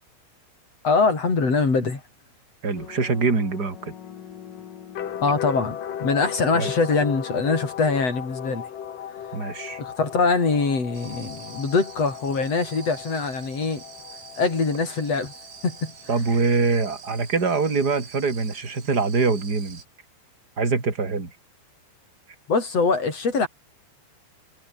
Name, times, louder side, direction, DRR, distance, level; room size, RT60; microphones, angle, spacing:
voice 1, 0.8-2.0 5.2-8.7 9.8-13.8 14.4-15.3 15.6-15.9 22.5-23.5, left 4 dB, 30° left, 6.0 m, -23 dB
voice 2, 2.6-3.9 6.5-6.7 9.3-9.8 16.1-19.8 20.6-21.3, right 4 dB, 20° right, 3.8 m, -24 dB
sound 1, 2.8-16.3, left 9 dB, 50° left, 3.2 m, -37 dB
sound 2, 10.9-19.8, right 6 dB, 70° right, 8.3 m, -46 dB
omnidirectional pair, 5.8 m